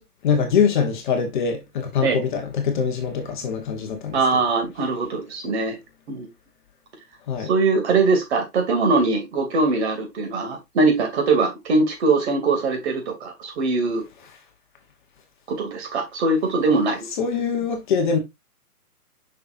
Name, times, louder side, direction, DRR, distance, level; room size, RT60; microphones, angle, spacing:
voice 1, 0.2-4.4 7.3-7.5 17.2-18.2, left 6 dB, 30° left, 1.0 m, -23 dB
voice 2, 4.1-5.8 6.1-6.3 7.5-14.0 15.5-17.0, right 3 dB, 45° right, 2.6 m, -21 dB
6.5 x 5.7 x 2.5 m
hypercardioid pair, 150°, 47 cm